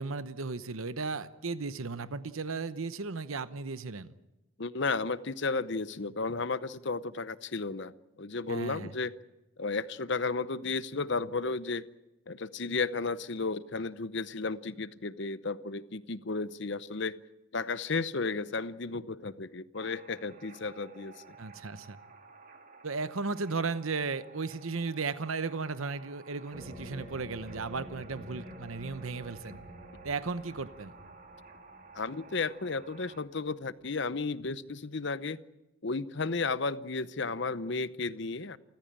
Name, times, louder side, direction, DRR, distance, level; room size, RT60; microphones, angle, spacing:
voice 1, 0.0-4.1 8.5-8.9 21.4-22.0 22.8-29.6 30.0-30.9, right 4 dB, 75° right, 0.9 m, -35 dB
voice 2, 4.6-9.1 9.6-11.9 12.3-17.2 17.5-21.2 31.9-35.4 35.8-38.6, left 4 dB, 55° left, 0.8 m, -33 dB
sound 1, 19.7-33.2, right 4 dB, 40° right, 2.2 m, -54 dB
sound 2, 26.5-33.8, equal, 15° right, 7.1 m, -49 dB
28.5 x 15.0 x 8.9 m
head